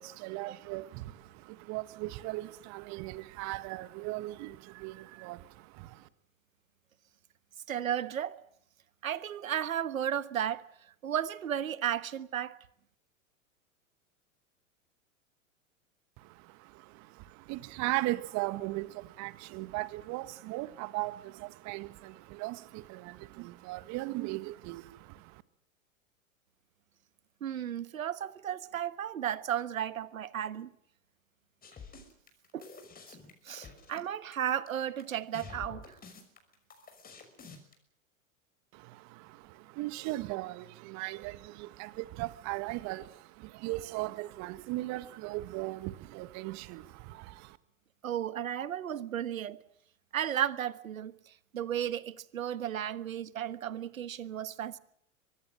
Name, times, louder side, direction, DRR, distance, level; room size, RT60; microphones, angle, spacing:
voice 1, 0.0-6.1 16.2-25.4 38.7-47.6, right 19 dB, 40° right, 1.6 m, -38 dB
voice 2, 7.7-8.4 9.0-10.6 11.0-12.5 27.4-30.7 32.5-32.6 33.1-33.2 33.4-36.0 48.0-49.6 50.1-54.8, right 10 dB, 75° right, 1.4 m, -34 dB
sound 1, 31.6-37.7, left 5 dB, 20° left, 5.9 m, -49 dB
24.0 x 20.0 x 7.6 m
hypercardioid pair, 95°, 40 cm